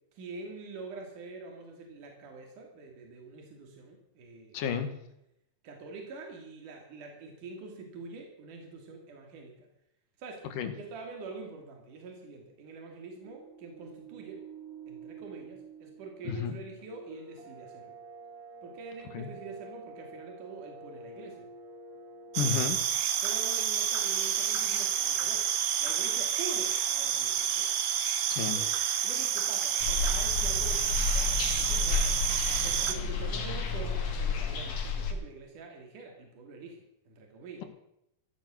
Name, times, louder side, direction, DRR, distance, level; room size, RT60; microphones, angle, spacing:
voice 1, 0.1-4.6 5.6-9.7 10.2-10.4 10.8-14.4 14.9-18.0 18.6-21.5 23.2-25.5 25.8-27.7 28.6-28.7 29.0-32.2 32.6-37.6, right 3 dB, 70° right, 2 dB, 4.2 m, -45 dB
voice 2, 4.5-4.9 10.6-10.7 16.2-16.6 19.1-19.3 22.4-22.8 28.3-28.6, left 7 dB, 80° left, 8 dB, 3.3 m, -31 dB
sound 1, 13.2-22.6, right 4 dB, 25° right, 5.6 m, -48 dB
sound 2, 22.3-32.9, right 9 dB, 90° right, 3.0 m, -29 dB
sound 3, 29.8-35.1, left 4 dB, 65° left, 3.4 m, -31 dB
15.5 x 14.5 x 6.3 m, 0.78 s
omnidirectional pair, 3.8 m